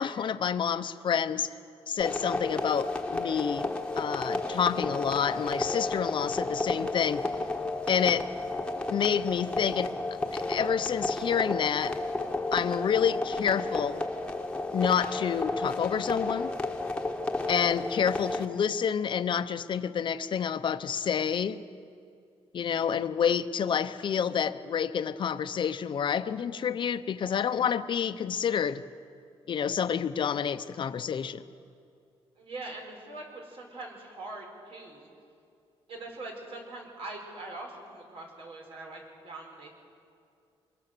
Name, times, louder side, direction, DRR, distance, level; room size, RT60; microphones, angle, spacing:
voice 1, 0.0-1.5 1.9-7.3 7.9-8.3 8.9-9.9 10.3-12.0 12.5-14.0 14.7-16.5 17.5-21.6 22.5-28.8 29.5-31.4, left 7 dB, 50° left, 11 dB, 0.8 m, -28 dB
sound 1, 2.0-18.5, left 2 dB, 10° left, 1.4 m, -32 dB
voice 2, 32.4-35.1 35.9-39.7, right 2 dB, 65° right, 1 dB, 5.1 m, -42 dB
25.0 x 22.0 x 6.8 m, 2.4 s
cardioid pair, 135°, 10 cm